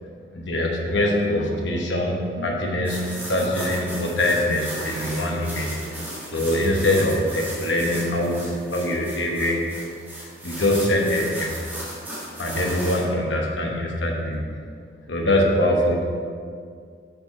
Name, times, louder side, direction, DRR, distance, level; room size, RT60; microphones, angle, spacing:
voice 1, 0.3-5.7 6.3-9.8 10.4-11.5 12.4-14.4 15.1-16.0, left 1 dB, 75° left, -1 dB, 1.2 m, -23 dB
sound 1, 2.8-13.0, right 1 dB, 10° right, 1.5 m, -36 dB
6.2 x 5.4 x 5.5 m, 2.2 s
head